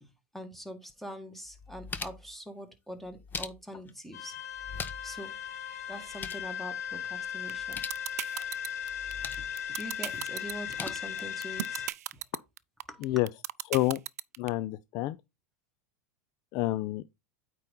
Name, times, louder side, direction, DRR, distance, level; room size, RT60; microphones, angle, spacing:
voice 1, 0.0-4.4 5.0-5.3 5.9-7.8 8.3-8.5 9.4-11.9 12.1-12.2 12.9-13.2, equal, ahead, 1.8 m, -44 dB
sound 1, 0.9-1.0 1.5-2.4 3.0-3.9 4.5-5.2 5.5-5.6 5.9-6.5 7.5-8.0 8.9-9.5 10.5-10.9, left 5 dB, 25° left, 0.8 m, -41 dB
sound 2, 4.1-11.9, left 9 dB, 80° left, 1.4 m, -37 dB
sound 3, 7.5-14.5, right 13 dB, 80° right, 0.4 m, -35 dB
voice 2, 13.7-14.0 14.4-15.2 16.5-17.1, left 16 dB, 50° left, 0.5 m, -28 dB
8.8 x 4.1 x 3.8 m
hypercardioid pair, 100°, 8 cm